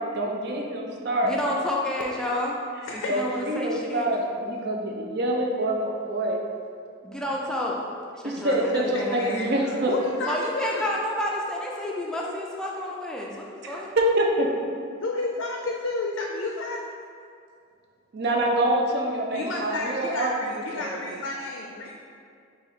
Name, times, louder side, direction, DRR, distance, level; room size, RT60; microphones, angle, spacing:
voice 1, 0.1-1.3 3.1-6.4 8.2-10.0 13.6-14.5 18.1-20.3 20.7-21.0, right 1 dB, 55° right, 0 dB, 0.5 m, -26 dB
voice 2, 1.2-2.6 2.9-4.1 7.0-7.8 8.2-9.6 10.3-13.9, left 1 dB, 5° left, -3 dB, 0.4 m, -30 dB
voice 3, 2.9-3.4 8.3-10.9 11.8-12.0 15.0-16.8 19.3-22.0, left 2 dB, 70° left, 0 dB, 0.4 m, -31 dB
3.9 x 2.7 x 4.3 m, 2.3 s
head